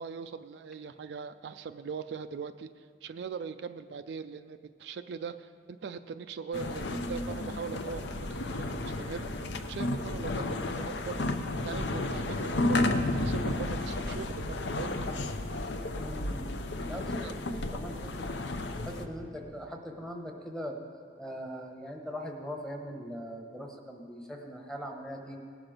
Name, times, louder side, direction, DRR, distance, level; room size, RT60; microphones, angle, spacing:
voice 1, 0.0-9.3 9.7-11.2 11.6-14.4 14.8-15.0 16.9-17.3, right 6 dB, 65° right, 10 dB, 0.3 m, -41 dB
sound 1, 6.5-19.1, left 2 dB, 70° left, 0.6 m, -32 dB
voice 2, 16.0-16.5 16.8-18.3 18.8-20.8 21.2-25.4, equal, 5° left, 2 dB, 1.0 m, -41 dB
18.0 x 6.0 x 5.1 m, 2.1 s
head